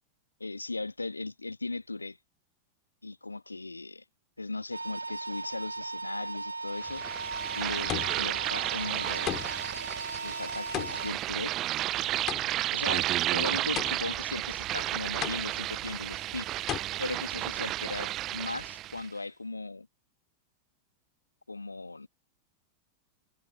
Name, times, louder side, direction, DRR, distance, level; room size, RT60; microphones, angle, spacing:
voice 1, 0.4-2.2 3.0-4.0 4.4-7.0 7.5-9.6 10.2-11.5 12.7-16.5 17.0-19.9 21.5-22.1, left 3 dB, 80° left, 2.0 m, -38 dB
sound 1, 4.7-11.1, right 3 dB, 80° right, 5.9 m, -37 dB
sound 2, 6.8-19.1, right 15 dB, 35° right, 0.8 m, -32 dB
sound 3, 6.9-7.3 7.9-8.4 9.3-9.8 10.7-12.8 13.8-14.3 15.2-15.8 16.7-16.8, left 13 dB, 30° left, 3.9 m, -36 dB
figure-of-eight pair, 90°, 0 cm